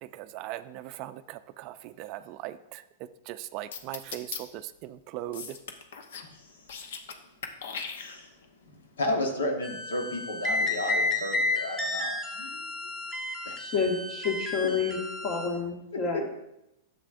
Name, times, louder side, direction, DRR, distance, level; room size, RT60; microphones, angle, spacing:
voice 1, 0.0-5.6, right 14 dB, 45° right, 12 dB, 0.4 m, -40 dB
sound 1, 3.7-4.4 5.3-6.3 6.6-7.2 7.4-8.5, left 6 dB, 70° left, 0.8 m, -38 dB
voice 2, 8.0-8.3 8.6-12.9 13.4-13.5 16.1-16.2, left 1 dB, 90° left, 3 dB, 1.2 m, -33 dB
sound 2, 9.6-15.5, left 2 dB, 15° left, 1.2 m, -31 dB
voice 3, 13.6-16.3, left 5 dB, 40° left, 2 dB, 1.6 m, -29 dB
9.9 x 7.3 x 2.5 m, 0.85 s
hypercardioid pair, 125°, 0 cm